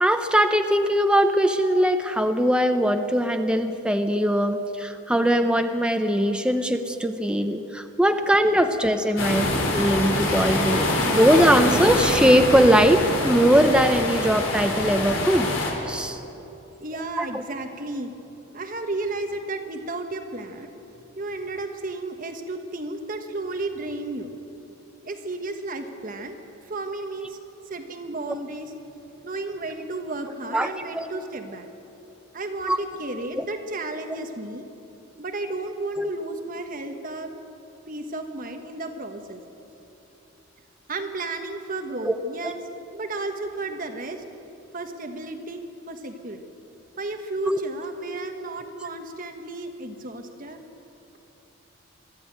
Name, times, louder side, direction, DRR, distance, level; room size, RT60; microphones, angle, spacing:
voice 1, 0.0-9.5 9.7-15.5 15.9-16.2 17.2-17.3 30.5-30.7 30.9-31.1 32.7-32.8 33.4-33.5 36.0-36.1 42.0-42.1 47.5-47.6, equal, 5° right, 6 dB, 0.7 m, -21 dB
sound 1, 9.2-15.7, left 1 dB, 70° left, 4.2 m, -24 dB
voice 2, 16.8-18.1 18.5-20.7 21.1-24.3 25.0-26.4 26.6-27.4 27.7-28.8 29.2-31.7 32.3-34.6 35.2-37.3 37.9-39.4 40.9-42.6 42.9-44.2 44.7-46.4 47.0-50.6, right 2 dB, 40° right, 6 dB, 1.3 m, -33 dB
23.0 x 13.0 x 9.2 m, 2.9 s
head